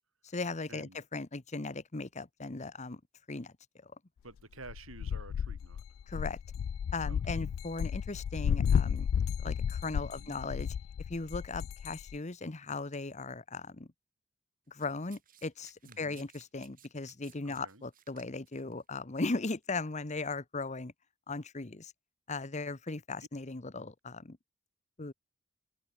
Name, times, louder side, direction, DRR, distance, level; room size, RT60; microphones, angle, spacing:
voice 1, 0.2-3.0 3.3-3.5 3.8-3.9 6.1-6.4 6.9-9.1 9.4-10.7 11.1-13.9 14.7-20.9 21.3-21.9 22.3-24.4 25.0-25.1, left 3 dB, 35° left, 1.0 m, -38 dB
voice 2, 4.2-5.8 7.0-7.5 10.0-10.4 15.9-16.2 17.4-17.8, right 2 dB, 80° right, 7.7 m, -51 dB
sound 1, 4.6-12.2, left 7 dB, 75° left, 0.3 m, -33 dB
Domestic sounds home sounds, 14.8-18.7 19.6-19.8, right 10 dB, 45° right, 6.3 m, -60 dB
open air
head